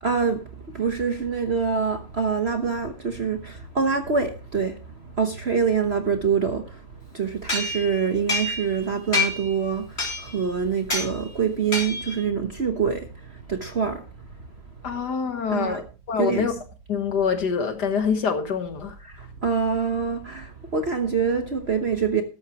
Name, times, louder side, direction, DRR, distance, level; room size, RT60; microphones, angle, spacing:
voice 1, 0.0-14.3 15.5-15.8 16.2-16.5 19.0-22.2, right 6 dB, 40° right, 1.0 m, -25 dB
sound 1, 7.5-8.8 9.1-9.5 10.0-10.4 10.9-11.1 11.7-12.2, left 3 dB, 30° left, 3.8 m, -27 dB
voice 2, 14.8-16.5 16.9-18.9, left 6 dB, 55° left, 1.7 m, -25 dB
13.5 x 12.0 x 3.0 m
omnidirectional pair, 2.2 m